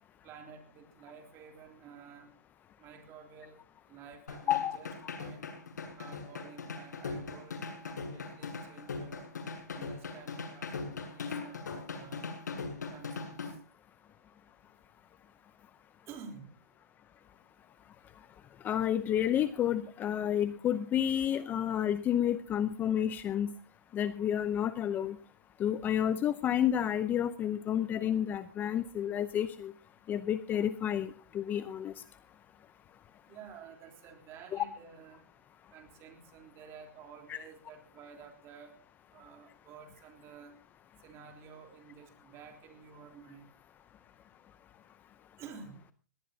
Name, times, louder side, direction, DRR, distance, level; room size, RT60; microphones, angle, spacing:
voice 1, 0.2-2.3 2.8-3.6 3.9-5.4 6.0-9.3 9.7-12.3 12.9-13.4 16.1-16.5 33.3-35.2 35.7-38.8 39.1-40.6 41.0-43.4 45.4-45.8, right 6 dB, 30° right, 4 dB, 3.5 m, -51 dB
sound 1, 4.3-13.5, left 4 dB, 85° left, 7.2 m, -40 dB
voice 2, 18.6-23.5 23.9-25.2 25.6-29.7 30.1-31.9 34.5-34.7 37.3-37.4, left 10 dB, 20° left, 13 dB, 0.7 m, -30 dB
20.0 x 18.5 x 2.8 m, 0.36 s
hypercardioid pair, 140°, 9 cm